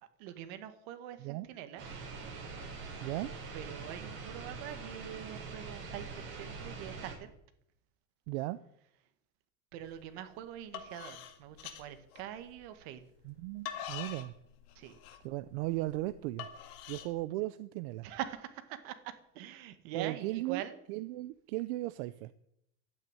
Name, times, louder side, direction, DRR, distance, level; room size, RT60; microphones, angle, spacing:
voice 1, 0.2-1.9 3.5-7.3 9.7-13.0 14.8-15.0 18.0-20.8, right 11 dB, 70° right, 9 dB, 1.9 m, -44 dB
sound 1, 1.8-7.2, right 4 dB, 35° right, 7.6 m, -44 dB
voice 2, 8.3-8.6 13.2-14.3 15.2-16.5 16.9-18.1 19.9-22.3, right 18 dB, 90° right, 13 dB, 0.7 m, -36 dB
sound 2, 9.9-10.2 10.6-12.7 13.2-17.1, left 9 dB, 75° left, 2.1 m, -45 dB
12.0 x 9.5 x 9.1 m, 0.75 s
cardioid pair, 175°, 32 cm